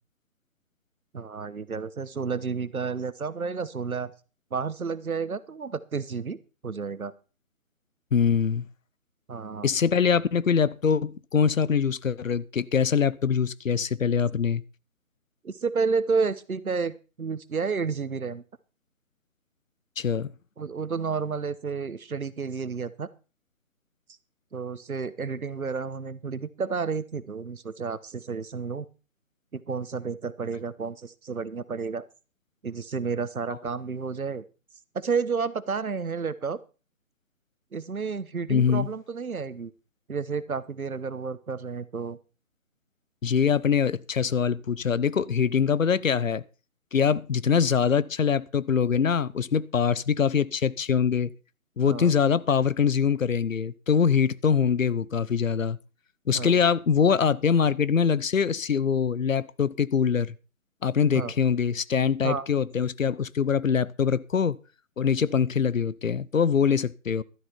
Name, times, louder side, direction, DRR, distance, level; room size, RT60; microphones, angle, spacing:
voice 1, 1.1-4.1 4.5-7.1 9.3-9.7 15.4-18.4 20.6-23.1 24.5-28.9 29.5-32.0 32.6-34.4 34.9-36.6 37.7-39.7 40.1-42.2 51.8-52.1 56.3-56.6 61.1-61.3 62.2-62.5, right 5 dB, 80° right, 1.2 m, -31 dB
voice 2, 8.1-8.7 9.6-14.6 20.0-20.3 38.5-38.9 43.2-46.4 46.9-51.3 51.8-55.8 56.3-60.4 60.8-64.6 65.0-67.2, left 7 dB, 70° left, 0.9 m, -23 dB
12.5 x 11.5 x 4.4 m
figure-of-eight pair, 150°, 42 cm